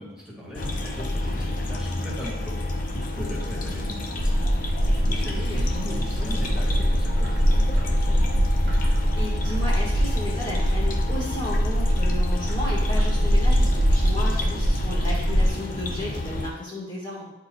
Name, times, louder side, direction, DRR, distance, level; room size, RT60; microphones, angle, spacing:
voice 1, 0.0-8.4, equal, 5° right, -6 dB, 1.7 m, -39 dB
sound 1, 0.5-16.5, left 2 dB, 45° left, 0.6 m, -30 dB
voice 2, 1.1-1.5 5.0-5.6 8.9-17.3, left 1 dB, 25° left, -7 dB, 1.5 m, -34 dB
Bird, 4.2-15.5, equal, 60° right, 1.0 m, -23 dB
9.9 x 4.3 x 2.3 m, 1.0 s
head